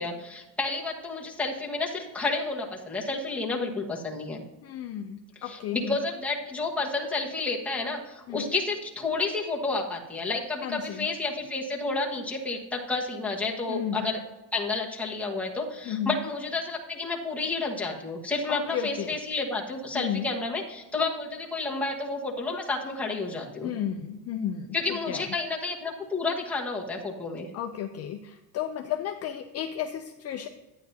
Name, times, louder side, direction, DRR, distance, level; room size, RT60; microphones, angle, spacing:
voice 1, 0.0-4.4 5.3-14.2 14.5-23.7 24.7-27.5, left 3 dB, 5° left, -3 dB, 1.3 m, -30 dB
voice 2, 4.6-6.0 8.3-8.5 10.6-11.1 13.7-14.1 15.9-16.2 18.5-19.2 19.9-20.3 23.6-25.3 27.5-30.5, left 9 dB, 40° left, 5 dB, 0.5 m, -33 dB
11.5 x 9.4 x 2.7 m, 1.0 s
cardioid pair, 160°, 40 cm